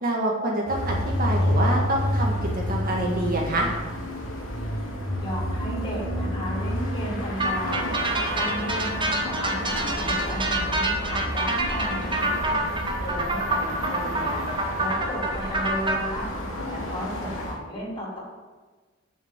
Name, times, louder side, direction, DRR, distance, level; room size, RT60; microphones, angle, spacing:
voice 1, 0.0-3.7, right 1 dB, 45° right, -1 dB, 1.7 m, -26 dB
sound 1, 0.7-17.6, left 1 dB, 75° left, 2.5 m, -29 dB
voice 2, 5.2-7.9 8.3-12.4 13.0-14.4 14.8-16.3 16.7-18.2, equal, 25° left, -6 dB, 3.8 m, -34 dB
sound 2, 7.4-16.0, right 2 dB, 25° right, 1.1 m, -27 dB
7.3 x 6.9 x 7.5 m, 1.3 s
head